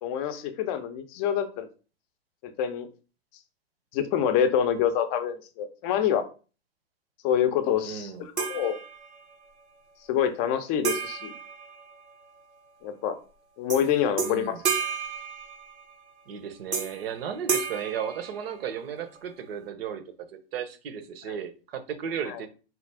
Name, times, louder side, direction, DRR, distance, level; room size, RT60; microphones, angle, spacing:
voice 1, 0.0-1.7 2.4-2.9 3.9-6.2 7.2-8.8 10.1-11.3 12.8-13.2 13.6-14.6 21.3-21.4 22.3-22.4, left 9 dB, 30° left, 0.5 m, -26 dB
voice 2, 7.8-8.3 14.2-14.6 16.3-22.5, right 8 dB, 60° right, 0.8 m, -35 dB
sound 1, 8.4-9.4 10.8-12.4 13.7-13.9 14.2-16.0 16.7-17.1 17.5-18.9, right 6 dB, 90° right, 1.0 m, -32 dB
4.3 x 2.3 x 3.4 m
hypercardioid pair, 115°, 33 cm